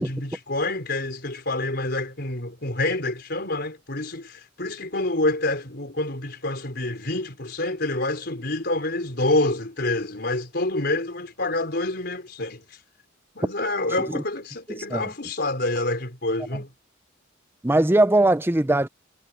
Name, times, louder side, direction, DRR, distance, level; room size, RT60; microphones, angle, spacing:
voice 1, 0.0-12.8 13.3-16.7, left 2 dB, 55° left, 4.7 m, -27 dB
voice 2, 17.6-18.9, right 1 dB, 10° right, 0.6 m, -20 dB
head